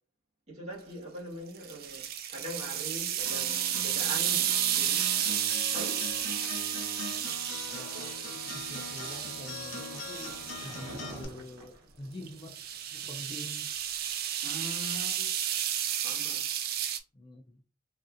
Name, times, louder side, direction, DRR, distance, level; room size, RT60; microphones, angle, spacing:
voice 1, 0.5-5.0 5.7-6.1 7.9-8.2 14.4-15.3 16.0-16.4, right 1 dB, 35° right, 1.5 m, -42 dB
sound 1, 1.6-11.1 12.3-17.0, right 10 dB, 50° right, 0.3 m, -32 dB
Acoustic guitar, 3.3-11.2, left 3 dB, 70° left, 0.7 m, -42 dB
voice 2, 7.7-10.3 10.6-12.6 12.9-13.7 17.1-17.6, left 1 dB, 25° left, 0.4 m, -46 dB
Skateboard, 7.7-13.1, right 2 dB, 75° right, 0.9 m, -50 dB
3.2 x 2.6 x 2.5 m
head